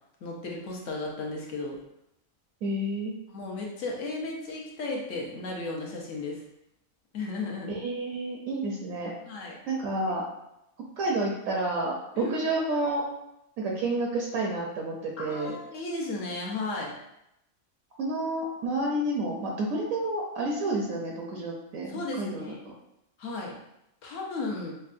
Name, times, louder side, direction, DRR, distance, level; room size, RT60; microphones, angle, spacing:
voice 1, 0.2-1.8 3.3-6.4 7.1-7.7 9.3-9.6 12.2-12.4 15.2-16.9 21.9-22.6 23.2-23.5 24.0-24.7, left 3 dB, 65° left, -1 dB, 1.1 m, -34 dB
voice 2, 2.6-3.2 7.7-9.1 9.7-10.2 11.0-13.0 13.6-15.6 18.0-22.7, right 2 dB, 75° right, -1 dB, 1.0 m, -30 dB
5.3 x 2.2 x 2.4 m, 0.83 s
omnidirectional pair, 1.5 m